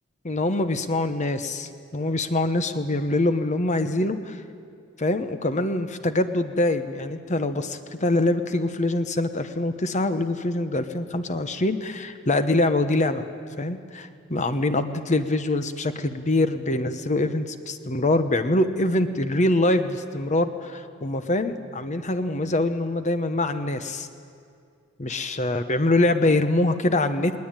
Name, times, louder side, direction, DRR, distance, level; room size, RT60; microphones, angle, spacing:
voice 1, 0.2-4.4 5.0-13.2 13.6-24.1 25.0-27.5, left 2 dB, 35° left, 10 dB, 1.0 m, -24 dB
20.0 x 19.0 x 9.0 m, 2.3 s
head